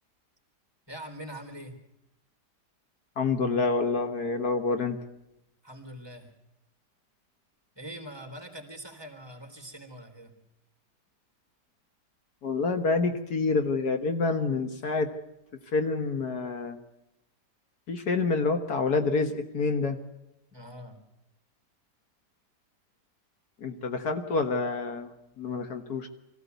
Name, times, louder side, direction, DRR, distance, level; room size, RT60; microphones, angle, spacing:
voice 1, 0.9-1.7 5.6-6.3 7.8-10.4 20.5-21.0, right 1 dB, 15° right, 3 dB, 3.5 m, -43 dB
voice 2, 3.2-5.0 12.4-15.1 15.7-16.8 17.9-20.0 23.6-25.1 25.4-26.1, left 4 dB, 65° left, 6 dB, 1.9 m, -27 dB
23.5 x 15.5 x 8.1 m, 0.88 s
omnidirectional pair, 1.8 m